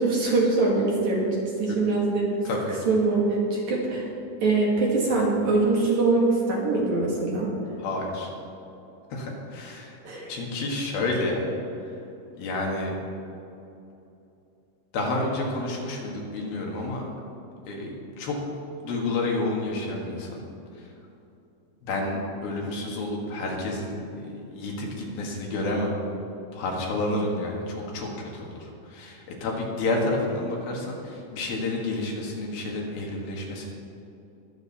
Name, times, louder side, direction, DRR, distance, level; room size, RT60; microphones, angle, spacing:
voice 1, 0.0-2.3 2.8-4.1 4.4-7.5 10.0-10.3, right 3 dB, 55° right, -3 dB, 2.5 m, -23 dB
voice 2, 7.8-8.3 9.1-10.0 10.3-11.5 12.4-12.9 14.9-17.0 17.7-18.4 18.8-20.4 20.8-20.9 21.8-25.9 26.5-33.7, left 2 dB, 70° left, -1 dB, 3.5 m, -30 dB
22.0 x 8.0 x 4.2 m, 2.8 s
omnidirectional pair, 4.7 m